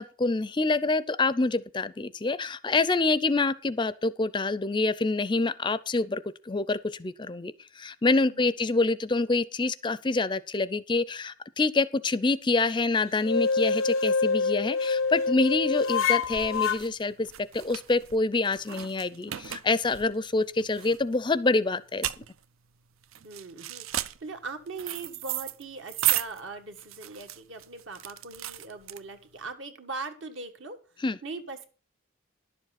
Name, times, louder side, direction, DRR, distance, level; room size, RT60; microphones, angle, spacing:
voice 1, 0.0-17.3 17.5-22.1 31.0-31.2, left 3 dB, 20° left, 0.4 m, -26 dB
voice 2, 8.1-8.5 23.2-30.8 31.2-31.7, right 3 dB, 65° right, 1.6 m, -40 dB
sound 1, 13.2-16.8, left 5 dB, 70° left, 0.5 m, -26 dB
sound 2, 15.0-29.4, right 13 dB, 80° right, 0.5 m, -35 dB
11.0 x 7.3 x 5.8 m
head